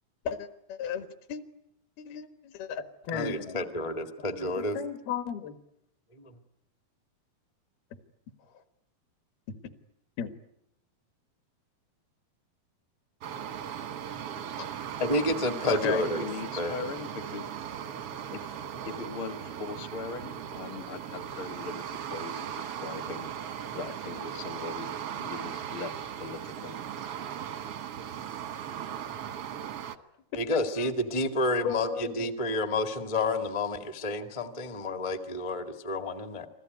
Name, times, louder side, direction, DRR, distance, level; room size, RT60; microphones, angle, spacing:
voice 1, 0.3-1.4 2.0-3.6 4.4-5.6 10.2-10.3 15.6-16.1 16.8-16.9 30.5-30.9 31.6-32.3, left 8 dB, 75° left, 8 dB, 3.6 m, -35 dB
voice 2, 3.1-4.8 6.2-6.3 15.0-16.3 16.6-16.8 30.4-36.5, left 2 dB, 45° left, 6 dB, 0.4 m, -30 dB
sound 1, 13.2-30.0, right 9 dB, 75° right, 1.3 m, -38 dB
voice 3, 15.7-17.4 18.3-18.5 18.8-25.9 26.2-26.8, left 4 dB, 60° left, 9 dB, 1.4 m, -40 dB
29.0 x 21.0 x 9.5 m, 0.81 s
omnidirectional pair, 4.5 m